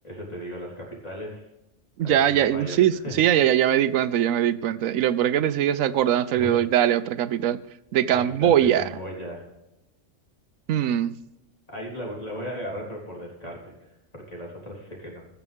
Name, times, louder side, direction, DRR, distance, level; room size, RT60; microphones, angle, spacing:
voice 1, 0.0-1.5 2.0-2.8 3.0-3.1 6.3-6.6 8.1-9.4 11.7-13.7 14.1-15.2, equal, 30° left, -3 dB, 4.0 m, -36 dB
voice 2, 2.0-7.6 7.9-8.9 10.7-11.1, right 10 dB, 85° right, 14 dB, 1.0 m, -21 dB
21.0 x 7.1 x 3.5 m, 0.94 s
omnidirectional pair, 1.3 m